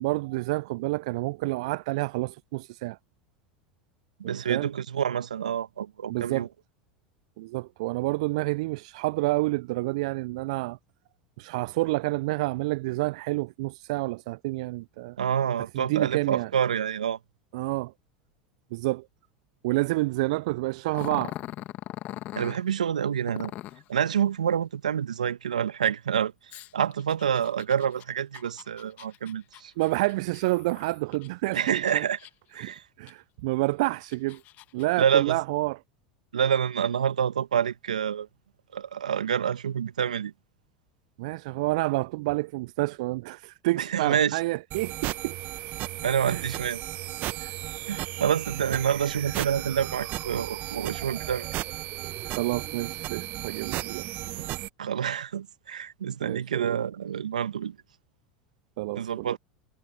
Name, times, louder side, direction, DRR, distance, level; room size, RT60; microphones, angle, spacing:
voice 1, 0.0-3.0 4.2-4.7 6.1-6.5 7.4-10.8 11.4-15.2 15.7-16.5 17.5-17.9 18.7-19.1 19.6-21.3 29.8-32.1 32.6-34.4 34.7-35.8 41.2-45.4 46.3-46.5 48.7-48.8 52.4-54.1 54.4-54.5 56.2-56.8 58.8-59.4, right 21 dB, 65° right, 0.4 m, -29 dB
voice 2, 4.2-6.5 15.2-17.2 22.3-23.5 23.9-26.3 26.7-29.7 31.5-32.2 32.5-32.8 35.0-35.4 36.3-38.3 38.7-40.3 43.8-44.4 46.0-46.8 47.4-47.5 47.9-51.5 54.8-57.7 58.9-59.4, right 8 dB, 80° right, 1.7 m, -27 dB
Growling, 20.9-22.6 23.3-23.9 26.5-31.3 31.7-32.5 33.1-33.2 33.8-34.9, left 15 dB, 45° left, 2.0 m, -41 dB
sound 1, 44.7-54.7, right 17 dB, 50° right, 1.2 m, -35 dB
hypercardioid pair, 80°, 4 cm